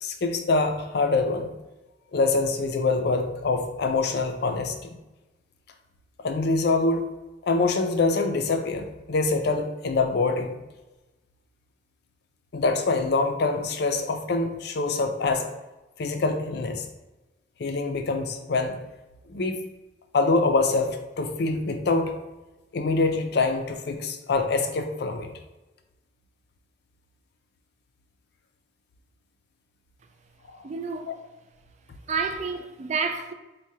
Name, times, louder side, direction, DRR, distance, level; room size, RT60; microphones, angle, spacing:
voice 1, 0.0-1.5 2.1-5.0 6.2-7.0 7.4-10.6 12.5-15.5 16.0-16.9 17.6-18.8 19.3-19.7 20.1-22.1 22.7-25.3 30.5-30.6 31.0-31.2, left 3 dB, 60° left, 0.4 m, -25 dB
voice 2, 30.6-31.1 32.1-33.3, right 5 dB, 35° right, 0.3 m, -29 dB
4.7 x 2.2 x 2.7 m
head